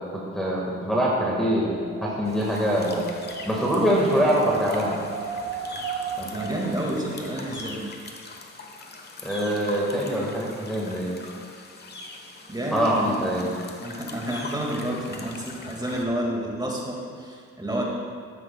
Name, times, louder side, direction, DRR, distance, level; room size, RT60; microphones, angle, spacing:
voice 1, 0.1-3.0 3.5-5.0 9.2-11.2 12.7-13.5, equal, ahead, -6 dB, 1.8 m, -24 dB
Wind, 1.5-7.4, right 5 dB, 45° right, 1.0 m, -36 dB
sound 1, 2.2-16.0, left 3 dB, 35° left, 1.2 m, -42 dB
voice 2, 6.2-7.8 12.5-13.2 13.8-17.8, right 1 dB, 15° right, -2 dB, 2.1 m, -30 dB
12.5 x 9.8 x 2.4 m, 2.1 s
cardioid pair, 90°, 30 cm